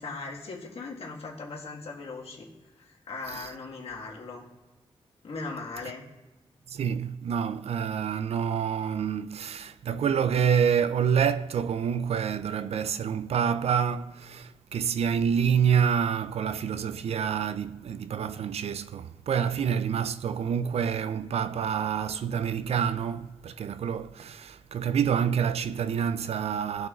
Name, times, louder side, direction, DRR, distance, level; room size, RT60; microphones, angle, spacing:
voice 1, 0.0-2.5 2.8-4.4 5.2-6.0, left 3 dB, 75° left, 1.6 m, -39 dB
voice 2, 6.7-26.9, right 7 dB, 80° right, 0.4 m, -27 dB
17.5 x 6.0 x 2.4 m
wide cardioid pair, 145°, 10 cm